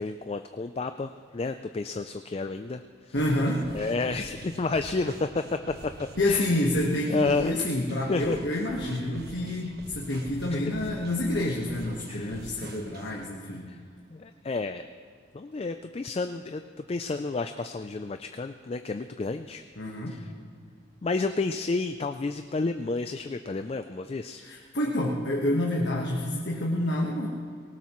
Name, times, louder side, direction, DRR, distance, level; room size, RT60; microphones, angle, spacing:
voice 1, 0.0-3.2 3.7-6.5 7.1-7.6 8.1-8.4 10.5-10.6 12.1-12.3 13.7-13.8 14.1-14.8 15.3-16.6 16.9-19.6 20.1-20.2 21.0-24.4, left 3 dB, 30° left, 8 dB, 0.3 m, -31 dB
voice 2, 3.1-3.7 6.2-13.7 19.8-20.2 24.4-27.3, left 1 dB, 60° left, -2 dB, 1.4 m, -28 dB
sound 1, 3.1-13.2, right 1 dB, 50° right, 1.3 m, -45 dB
19.0 x 18.0 x 3.1 m, 2.1 s
head